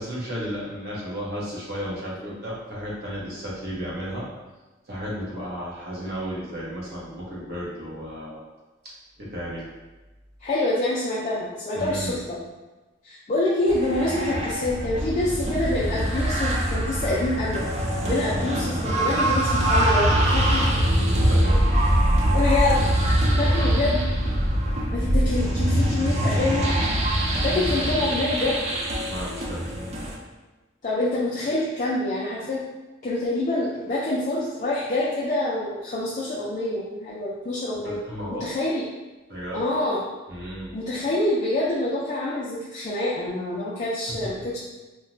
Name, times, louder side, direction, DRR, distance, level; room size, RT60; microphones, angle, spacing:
voice 1, 0.0-4.3 4.9-8.4 8.8-9.7 11.7-12.2 18.0-18.3 20.6-21.9 23.4-23.8 29.0-29.7 37.8-38.5 39.3-39.6 40.3-40.7 44.2-44.3, equal, 55° right, -6 dB, 0.8 m, -34 dB
voice 2, 10.4-12.4 13.0-17.6 18.1-20.6 22.3-23.0 23.4-24.0 24.9-26.7 27.4-28.6 30.8-32.6 33.0-38.0 38.4-38.8 39.5-40.0 40.7-44.6, left 2 dB, 40° left, -7 dB, 0.4 m, -26 dB
sound 1, 13.7-30.1, right 1 dB, 35° right, 0.4 m, -23 dB
2.9 x 2.1 x 2.6 m, 1.1 s
head